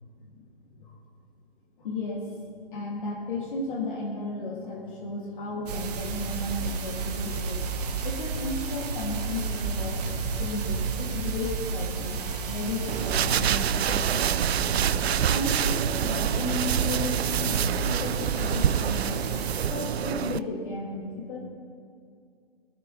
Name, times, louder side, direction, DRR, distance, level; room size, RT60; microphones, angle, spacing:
voice 1, 1.8-2.3 2.7-12.2 12.5-15.0 15.3-19.2 19.7-21.4, left 2 dB, 50° left, -3 dB, 2.9 m, -34 dB
sound 1, 5.7-19.7, right 5 dB, 40° right, 1.4 m, -32 dB
sound 2, 7.0-15.2, left 4 dB, 70° left, 1.6 m, -48 dB
sound 3, 12.9-20.4, right 9 dB, 75° right, 0.5 m, -27 dB
19.5 x 12.5 x 3.4 m, 2.3 s
hypercardioid pair, 150°, 32 cm